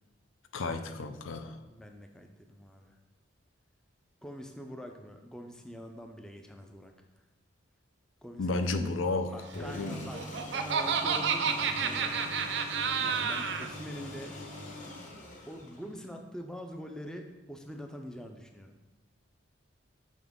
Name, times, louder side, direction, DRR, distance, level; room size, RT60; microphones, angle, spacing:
voice 1, 0.5-1.6 8.4-10.1, left 3 dB, 85° left, 8 dB, 0.5 m, -32 dB
voice 2, 1.7-2.9 4.2-7.0 8.2-8.5 9.3-12.2 13.0-14.4 15.5-18.7, equal, 5° left, 4 dB, 0.4 m, -45 dB
sound 1, 9.5-16.1, left 1 dB, 40° left, 1.0 m, -43 dB
Laughter, 9.9-13.7, right 6 dB, 60° right, 0.4 m, -30 dB
6.0 x 5.3 x 3.6 m, 1.1 s
head